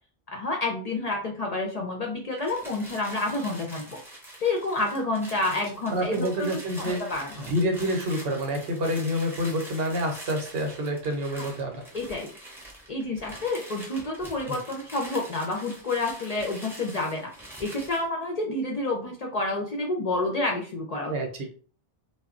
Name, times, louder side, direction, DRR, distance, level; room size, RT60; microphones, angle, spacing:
voice 1, 0.3-4.0 4.4-6.5 6.8-7.5 11.9-12.3 12.9-17.3 17.6-21.1, left 2 dB, 50° left, 1 dB, 0.5 m, -29 dB
sound 1, 2.3-18.1, right 1 dB, 5° right, 0.6 m, -45 dB
voice 2, 5.9-7.1 7.5-11.8 14.5-14.6 21.1-21.5, equal, 70° right, 3 dB, 0.9 m, -28 dB
2.1 x 2.0 x 3.6 m, 0.40 s
omnidirectional pair, 1.1 m